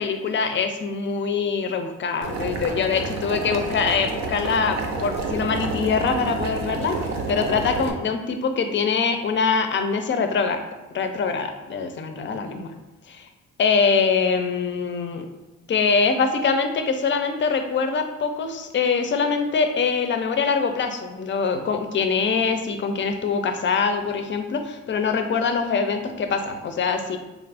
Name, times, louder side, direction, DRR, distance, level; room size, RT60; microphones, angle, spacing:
voice 1, 0.0-7.0 7.3-10.6 10.9-12.7 13.6-15.3 15.7-27.2, left 5 dB, 40° left, 7 dB, 0.5 m, -23 dB
Boiling, 2.2-7.9, right 3 dB, 60° right, 0.6 m, -29 dB
3.7 x 2.5 x 3.4 m, 1.1 s
cardioid pair, 90°, 30 cm